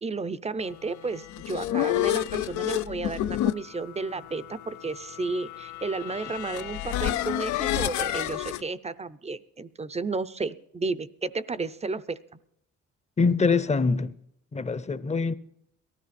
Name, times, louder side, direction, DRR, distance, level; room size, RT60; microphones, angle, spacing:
voice 1, 0.0-12.4, right 3 dB, 20° right, 0.6 m, -32 dB
sound 1, 1.1-8.6, left 13 dB, 75° left, 0.5 m, -30 dB
voice 2, 13.2-14.1 14.5-15.3, left 4 dB, 20° left, 0.7 m, -24 dB
18.5 x 13.5 x 4.2 m
cardioid pair, 90°, 30 cm